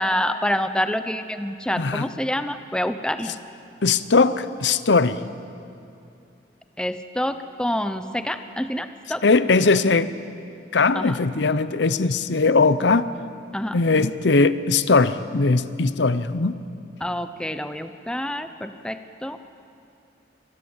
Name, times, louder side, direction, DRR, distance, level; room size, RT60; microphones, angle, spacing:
voice 1, 0.0-3.3 6.8-9.2 11.0-11.2 13.5-13.8 17.0-19.4, left 1 dB, 5° left, 9 dB, 0.8 m, -27 dB
voice 2, 1.8-2.1 3.3-3.4 3.8-5.2 9.2-10.1 10.7-13.1 13.7-16.6, left 4 dB, 75° left, 14 dB, 0.8 m, -20 dB
25.5 x 19.0 x 8.1 m, 2.6 s
head